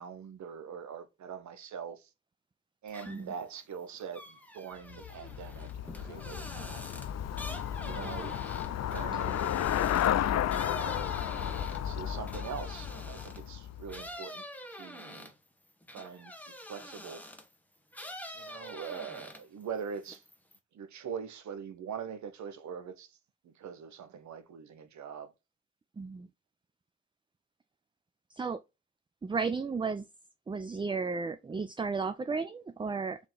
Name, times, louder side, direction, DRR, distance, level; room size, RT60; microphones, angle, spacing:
voice 1, 0.0-2.1 2.8-6.8 7.8-8.4 8.9-9.7 10.7-14.4 14.8-15.3 15.9-16.3 16.7-17.2 18.3-20.2 20.7-23.1 23.4-25.3, right 7 dB, 75° right, 0.8 m, -43 dB
sound 1, 2.9-3.4 3.8-13.5 13.9-17.5 17.9-19.6 19.9-20.6, left 1 dB, 5° left, 1.0 m, -46 dB
Traffic noise roadway noise / Bicycle, 4.9-14.1, left 10 dB, 60° left, 0.4 m, -33 dB
voice 2, 26.0-26.3 28.3-28.6 29.2-30.1 30.5-33.2, right 4 dB, 15° right, 0.4 m, -33 dB
3.6 x 2.8 x 3.8 m
cardioid pair, 60°, 29 cm